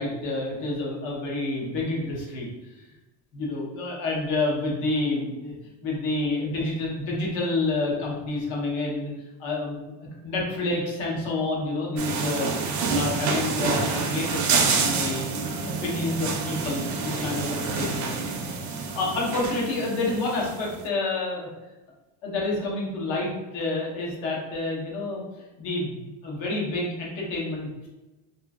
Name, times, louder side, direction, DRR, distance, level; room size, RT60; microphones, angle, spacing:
voice 1, 0.0-2.5 3.3-5.5 5.8-9.1 9.4-15.3 15.8-18.1 18.9-21.5 22.2-25.2 25.6-27.9, left 2 dB, 70° left, -3 dB, 1.1 m, -29 dB
sound 1, 12.0-20.7, right 4 dB, 40° right, 0.4 m, -27 dB
2.8 x 2.5 x 2.4 m, 1.1 s
cardioid pair, 135°, 48 cm